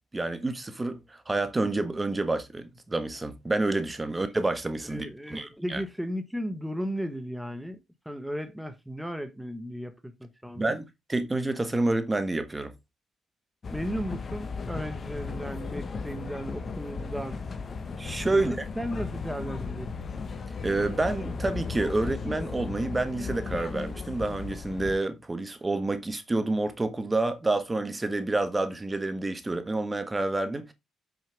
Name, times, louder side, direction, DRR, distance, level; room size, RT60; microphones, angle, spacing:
voice 1, 0.1-5.8 10.5-10.8 11.1-12.7 18.0-18.5 20.6-30.7, right 2 dB, 20° right, 1.4 m, -28 dB
voice 2, 4.9-7.8 8.0-10.8 13.7-17.4 18.3-19.9, equal, 5° right, 1.2 m, -35 dB
sound 1, 13.6-25.0, left 4 dB, 40° left, 1.2 m, -36 dB
8.3 x 6.5 x 3.4 m
cardioid pair, 90°, 0 cm